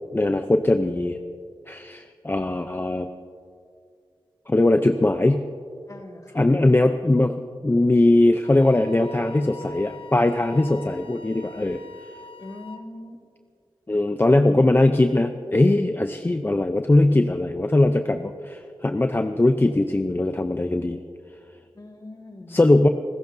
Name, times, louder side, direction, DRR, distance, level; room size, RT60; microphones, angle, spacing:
voice 1, 0.1-1.2 1.7-3.1 4.5-5.4 6.3-7.3 7.6-11.8 13.9-21.0 22.5-22.9, left 2 dB, 25° left, 7 dB, 0.6 m, -20 dB
voice 2, 5.9-6.5 12.4-13.2 21.7-22.6, left 1 dB, 40° left, 2 dB, 1.9 m, -41 dB
Wind instrument woodwind instrument, 8.4-12.9, left 3 dB, 85° left, 0.8 m, -44 dB
27.5 x 15.0 x 2.7 m, 2.2 s
wide cardioid pair, 65°, 9 cm